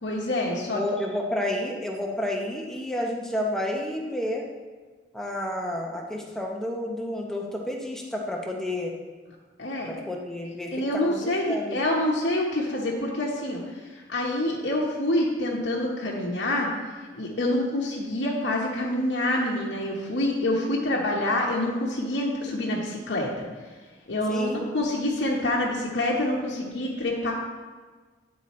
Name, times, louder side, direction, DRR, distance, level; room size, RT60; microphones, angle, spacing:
voice 1, 0.0-0.8 9.6-9.9 10.7-13.6 14.1-16.7 17.1-23.3 24.1-27.3, left 1 dB, 75° left, -5 dB, 1.0 m, -26 dB
voice 2, 0.6-4.5 5.1-8.9 9.9-11.8 24.3-24.6, left 1 dB, ahead, -1 dB, 0.7 m, -30 dB
9.9 x 4.0 x 4.2 m, 1.4 s
head